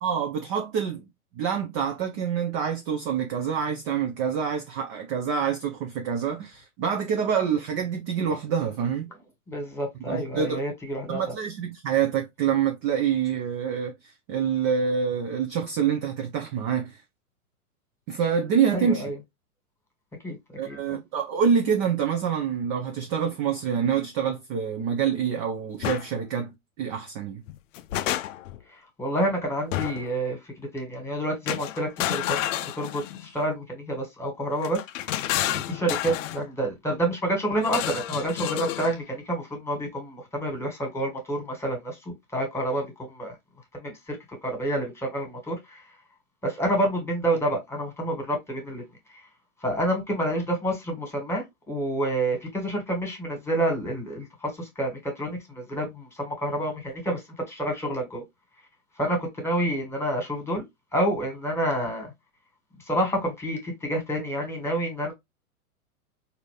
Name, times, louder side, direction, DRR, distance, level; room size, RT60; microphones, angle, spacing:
voice 1, 0.0-1.0 1.3-9.1 10.1-10.6 11.1-17.0 18.1-19.0 20.6-26.5 26.8-27.4, right 7 dB, 25° right, 0.4 m, -26 dB
voice 2, 9.5-11.2 18.7-19.2 20.2-20.4 20.6-21.0 28.7-32.4 32.8-35.1 35.5-43.3 43.7-44.2 44.4-45.8 46.4-48.8 49.1-49.3 49.6-57.2 57.5-58.2 59.0-60.6 60.9-62.1 62.8-65.1, right 1 dB, 5° left, 1.6 m, -28 dB
sound 1, 25.8-26.1 27.5-28.6 29.7-30.1 31.5-33.3 34.6-36.4 37.6-39.0, left 13 dB, 55° left, 0.5 m, -30 dB
3.9 x 2.7 x 3.1 m
hypercardioid pair, 120°, 45 cm